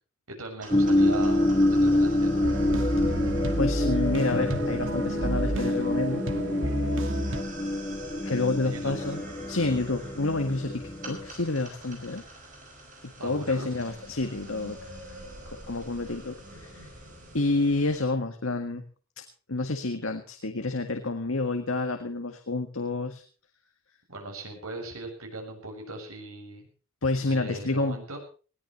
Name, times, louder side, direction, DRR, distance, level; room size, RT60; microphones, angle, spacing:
voice 1, 0.3-2.4 8.6-9.0 13.2-13.7 24.1-26.7 27.1-28.2, right 2 dB, 80° right, 3 dB, 7.2 m, -39 dB
sound 1, 0.6-18.0, right 2 dB, 35° right, 7.0 m, -45 dB
sound 2, 0.7-11.3, left 1 dB, 20° left, 1.3 m, -26 dB
sound 3, 2.4-7.4, right 1 dB, 60° right, 1.9 m, -31 dB
voice 2, 3.6-6.2 8.2-9.2 9.5-12.2 13.0-14.9 15.4-16.9 17.3-18.8 19.5-23.2 27.0-28.0, left 2 dB, 65° left, 6 dB, 1.8 m, -29 dB
20.5 x 17.5 x 3.2 m, 0.38 s
head